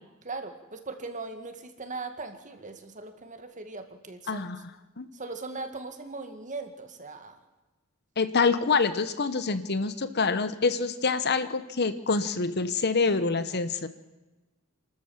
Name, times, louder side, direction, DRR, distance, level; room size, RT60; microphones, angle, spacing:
voice 1, 0.2-4.5 5.1-7.4, right 3 dB, 35° right, 7 dB, 2.1 m, -39 dB
voice 2, 4.3-4.6 5.0-5.1 8.2-13.9, left 4 dB, 50° left, 12 dB, 1.0 m, -26 dB
27.5 x 13.5 x 7.3 m, 1.1 s
head